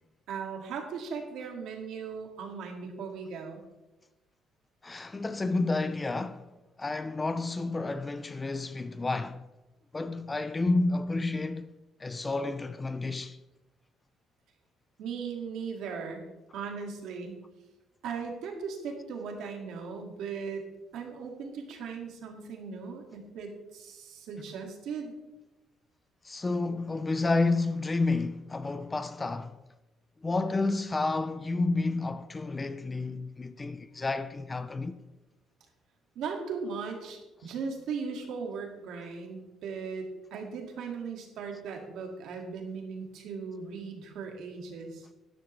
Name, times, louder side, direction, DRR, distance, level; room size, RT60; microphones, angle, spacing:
voice 1, 0.3-3.6 15.0-16.2 16.5-17.3 18.0-20.6 20.9-25.1 36.2-45.1, right 5 dB, 70° right, 2.1 m, -38 dB
voice 2, 4.8-6.5 6.8-9.4 9.9-11.7 12.0-13.4 26.2-29.6 30.2-35.0, left 3 dB, 15° left, 0.4 m, -30 dB
12.5 x 10.5 x 3.3 m
cardioid pair, 170°, 0 cm